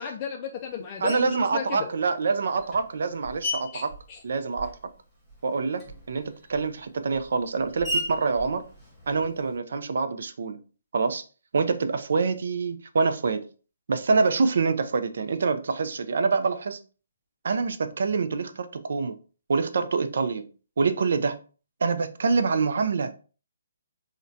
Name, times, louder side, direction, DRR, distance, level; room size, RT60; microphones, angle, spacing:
voice 1, 0.0-1.9 3.7-3.8 4.1-4.2, left 7 dB, 25° left, 0.3 m, -34 dB
voice 2, 1.0-3.9 4.2-4.7 5.4-8.6 9.1-10.6 10.9-11.2 11.5-13.4 13.9-16.8 17.4-19.2 19.5-20.5 20.8-21.4 21.8-23.1, right 4 dB, 65° right, 0.4 m, -26 dB
Screech, 1.1-1.5 2.3-5.0 5.3-9.6, left 1 dB, ahead, 1.0 m, -37 dB
3.7 x 2.2 x 2.6 m
hypercardioid pair, 160°, 0 cm